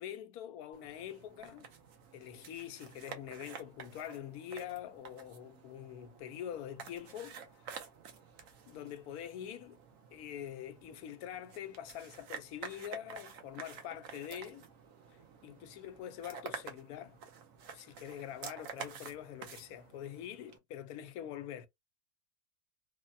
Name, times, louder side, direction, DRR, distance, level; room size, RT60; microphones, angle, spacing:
voice 1, 0.0-1.7 2.1-7.7 8.7-9.8 10.1-14.7 15.4-17.2 17.7-21.7, left 10 dB, 90° left, 1.1 m, -45 dB
sound 1, 0.7-20.6, right 6 dB, 70° right, 1.1 m, -50 dB
3.2 x 2.1 x 2.6 m
omnidirectional pair, 1.5 m